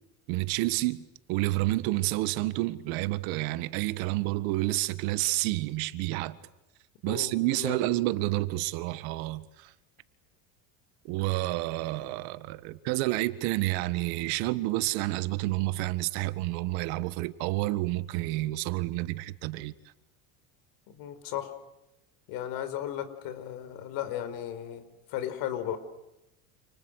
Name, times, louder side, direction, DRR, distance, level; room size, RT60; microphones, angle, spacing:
voice 1, 0.3-1.0 1.3-6.4 7.0-9.4 11.1-19.7, right 18 dB, 70° right, 1.8 m, -29 dB
voice 2, 7.1-7.8 20.9-21.5 22.3-25.8, left 11 dB, 65° left, 4.8 m, -35 dB
29.5 x 28.5 x 6.6 m
cardioid pair, 130°, 38 cm